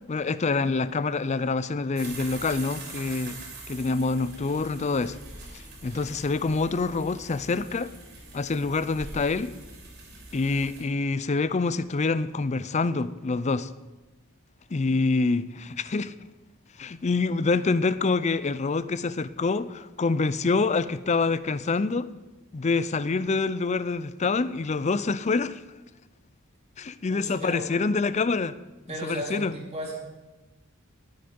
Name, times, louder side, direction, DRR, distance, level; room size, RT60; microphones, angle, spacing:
voice 1, 0.1-3.4 3.7-5.2 5.5-7.9 8.3-9.5 10.3-13.7 14.7-16.1 16.8-22.1 22.5-25.6 26.8-28.5 29.0-29.5, left 3 dB, 30° left, 0.4 m, -26 dB
sound 1, 2.0-10.8, right 3 dB, 50° right, 3.4 m, -43 dB
voice 2, 27.1-27.6 28.9-29.9, right 1 dB, 30° right, 3.3 m, -35 dB
18.5 x 7.8 x 5.4 m
head